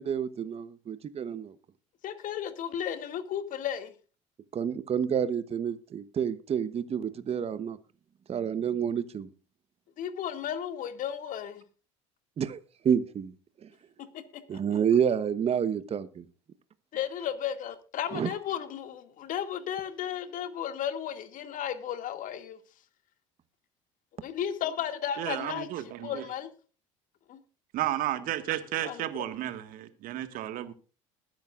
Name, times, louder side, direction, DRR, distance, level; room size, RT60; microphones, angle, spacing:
voice 1, 0.0-1.5 4.5-7.8 8.3-9.3 12.4-12.6 12.8-13.7 14.5-16.2 18.1-18.3, right 8 dB, 40° right, 1.1 m, -29 dB
voice 2, 2.0-3.9 10.0-11.6 14.1-14.8 16.9-22.6 24.2-25.7 26.0-26.5 27.3-27.4 28.8-29.3, left 9 dB, 55° left, 2.3 m, -34 dB
voice 3, 25.2-26.2 27.7-30.7, right 13 dB, 60° right, 1.8 m, -33 dB
21.0 x 10.5 x 2.5 m
hypercardioid pair, 70°, 16 cm